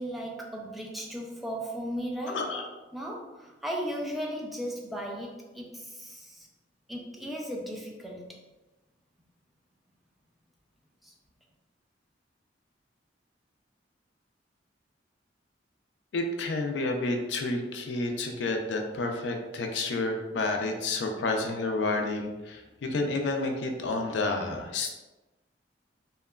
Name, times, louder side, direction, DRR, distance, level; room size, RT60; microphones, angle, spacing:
voice 1, 0.0-2.5 2.9-6.5 6.9-8.4 11.0-11.1, equal, ahead, -2 dB, 0.3 m, -36 dB
voice 2, 2.3-2.7 16.1-24.9, left 2 dB, 70° left, 3 dB, 0.4 m, -30 dB
2.8 x 2.2 x 2.2 m, 1.1 s
head